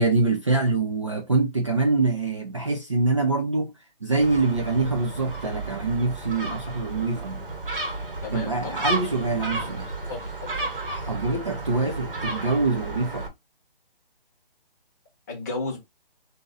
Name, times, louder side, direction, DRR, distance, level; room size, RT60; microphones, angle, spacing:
voice 1, 0.0-3.7 4.0-7.5 8.3-9.9 10.9-13.3, right 3 dB, 30° right, 0.5 m, -24 dB
Gull seagull, 4.2-13.3, right 2 dB, 65° right, 1.5 m, -32 dB
voice 2, 8.2-9.0 9.6-9.8 10.1-10.6 15.3-15.8, left 3 dB, 15° left, 1.0 m, -34 dB
4.1 x 2.6 x 3.8 m
hypercardioid pair, 170°, 29 cm